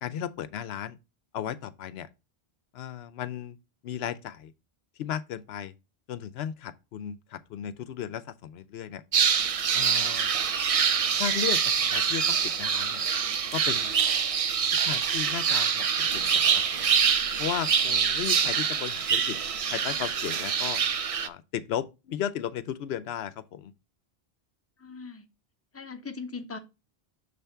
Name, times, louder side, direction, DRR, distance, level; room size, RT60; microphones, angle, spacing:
voice 1, 0.0-1.0 1.3-2.1 2.7-3.6 3.8-4.5 5.0-5.7 6.1-9.0 9.7-10.3 11.2-11.6 11.9-13.0 13.5-13.9 14.8-16.8 17.4-19.4 19.7-20.8 21.2-23.7, left 10 dB, 80° left, 0.8 m, -35 dB
sound 1, 9.1-21.3, right 7 dB, 50° right, 0.4 m, -25 dB
voice 2, 24.8-25.2 25.7-26.6, left 4 dB, 15° left, 0.8 m, -39 dB
6.8 x 3.4 x 5.5 m
omnidirectional pair, 1.0 m